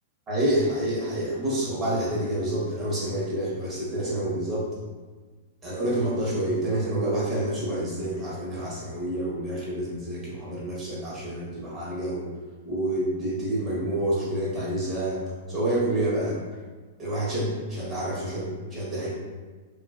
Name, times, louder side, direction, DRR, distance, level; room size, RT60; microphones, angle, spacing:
voice 1, 0.3-4.7 5.6-12.3 12.6-15.2 15.5-16.4 17.0-19.1, right 1 dB, 20° right, -6 dB, 0.9 m, -28 dB
2.6 x 2.4 x 2.4 m, 1.4 s
hypercardioid pair, 140°, 0 cm